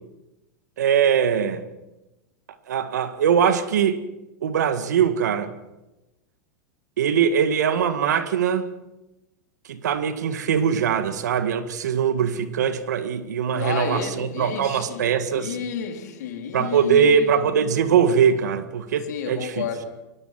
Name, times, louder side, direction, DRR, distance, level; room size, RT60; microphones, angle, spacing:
voice 1, 0.8-1.6 2.7-4.0 4.4-5.5 7.0-8.7 9.7-15.6 16.5-19.6, right 7 dB, 85° right, 1.9 m, -21 dB
voice 2, 13.5-17.6 19.1-19.9, left 7 dB, 80° left, 4.0 m, -31 dB
23.5 x 18.5 x 6.0 m
hypercardioid pair, 125°, 9 cm